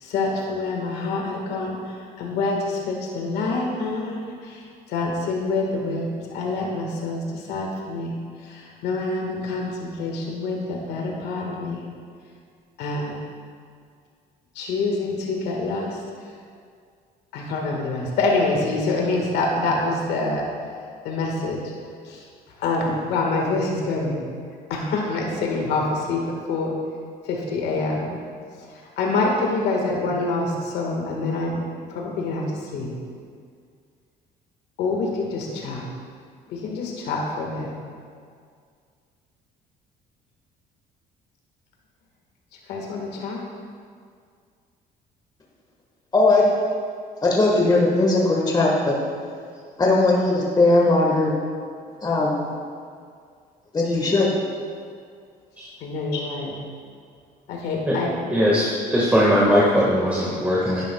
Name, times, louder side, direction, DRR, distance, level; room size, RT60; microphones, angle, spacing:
voice 1, 0.0-1.8 2.2-4.2 4.4-4.6 4.9-8.2 8.4-11.8 12.8-13.2 14.5-16.0 17.3-20.5 21.0-21.6 22.0-22.2 22.6-24.2 24.7-26.7 27.2-28.2 28.7-31.6 31.9-32.4 32.7-32.9 34.8-35.8 36.5-37.7 42.7-43.4 55.8-56.5 57.5-58.3, left 3 dB, 80° left, -1 dB, 1.6 m, -26 dB
voice 2, 46.1-46.5 47.2-49.0 49.8-51.3 52.0-52.5 53.7-54.4, left 2 dB, 25° left, -3 dB, 1.4 m, -19 dB
voice 3, 58.3-60.8, equal, 10° right, -6 dB, 1.6 m, -19 dB
10.5 x 10.5 x 2.3 m, 2.1 s
cardioid pair, 110°, 17 cm